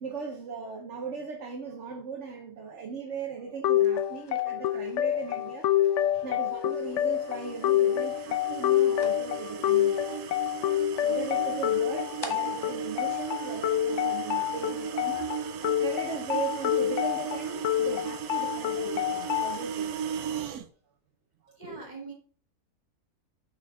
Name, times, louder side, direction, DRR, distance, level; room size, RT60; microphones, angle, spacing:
voice 1, 0.0-10.4 11.0-15.3 15.8-19.9 21.4-21.8, right 5 dB, 55° right, 1.1 m, -38 dB
sound 1, 3.6-19.6, left 12 dB, 65° left, 0.8 m, -27 dB
sound 2, 3.7-14.1, left 2 dB, 20° left, 0.8 m, -50 dB
sound 3, 6.7-20.7, right 9 dB, 85° right, 1.2 m, -37 dB
voice 2, 21.6-22.1, right 3 dB, 30° right, 2.1 m, -43 dB
6.5 x 5.6 x 3.6 m
omnidirectional pair, 1.5 m